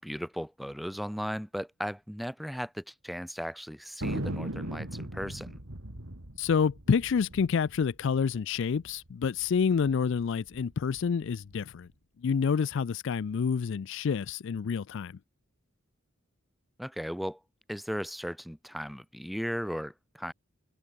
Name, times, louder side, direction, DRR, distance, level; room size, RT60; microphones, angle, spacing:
voice 1, 0.0-5.6 16.8-17.4 17.7-20.3, equal, ahead, 1.6 m, -36 dB
Thunder, 4.0-8.8 9.1-9.2 9.4-9.9 10.4-11.6, right 1 dB, 75° right, 3.3 m, -38 dB
voice 2, 6.4-11.9 12.2-15.2, left 6 dB, 60° left, 0.4 m, -28 dB
head